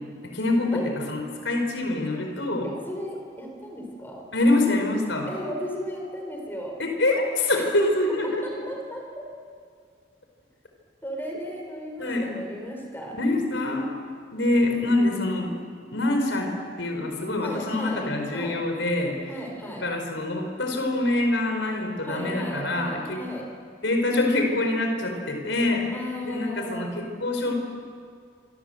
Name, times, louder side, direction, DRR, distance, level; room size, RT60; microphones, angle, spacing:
voice 1, 0.2-2.7 4.3-5.3 6.8-8.4 12.0-12.3 13.1-13.9 14.3-15.6 15.9-19.2 19.8-23.2 23.8-25.9 26.2-27.5, left 2 dB, 85° left, 3 dB, 4.6 m, -25 dB
voice 2, 2.6-4.2 5.3-6.8 7.5-7.7 8.4-9.3 11.0-13.2 17.4-18.0 18.3-18.6 19.3-19.9 22.0-23.5 25.9-27.0, equal, 10° left, 0 dB, 4.7 m, -35 dB
26.5 x 25.0 x 7.9 m, 2.2 s
head